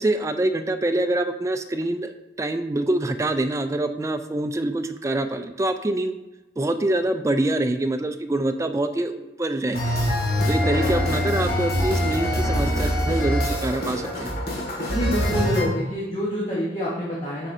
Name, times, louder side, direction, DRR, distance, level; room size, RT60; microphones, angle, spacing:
voice 1, 0.0-2.1 2.4-6.1 6.6-9.8 10.5-14.3, right 1 dB, 15° right, 8 dB, 0.3 m, -25 dB
sound 1, 9.7-15.6, equal, 55° left, 1.8 m, -24 dB
voice 2, 14.9-17.5, equal, 30° left, -5 dB, 1.0 m, -26 dB
7.6 x 6.0 x 2.6 m, 1.0 s
head